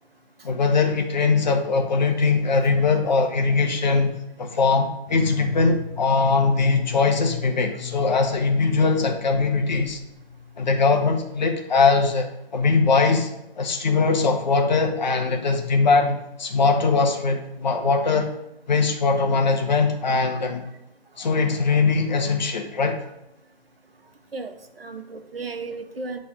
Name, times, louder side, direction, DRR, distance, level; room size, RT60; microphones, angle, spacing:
voice 1, 0.4-4.1 4.4-10.0 10.6-12.3 12.5-13.3 13.6-18.3 18.7-20.6 21.2-23.0, left 4 dB, 45° left, 3 dB, 1.6 m, -21 dB
sound 1, 5.1-11.0, left 7 dB, 25° left, 1.8 m, -36 dB
voice 2, 24.3-26.2, right 3 dB, 70° right, 6 dB, 1.4 m, -35 dB
11.5 x 4.2 x 5.1 m, 0.87 s
figure-of-eight pair, 150°, 30 cm